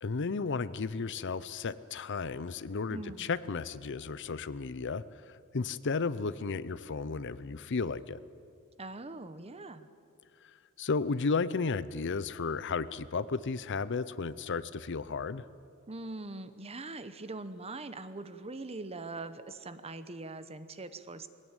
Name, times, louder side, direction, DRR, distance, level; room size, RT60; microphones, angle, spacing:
voice 1, 0.0-8.2 10.8-15.5, left 4 dB, 55° left, 16 dB, 0.6 m, -33 dB
voice 2, 2.9-3.3 8.8-9.9 15.9-21.3, right 2 dB, 30° right, 12 dB, 1.0 m, -42 dB
22.5 x 17.5 x 9.0 m, 2.3 s
head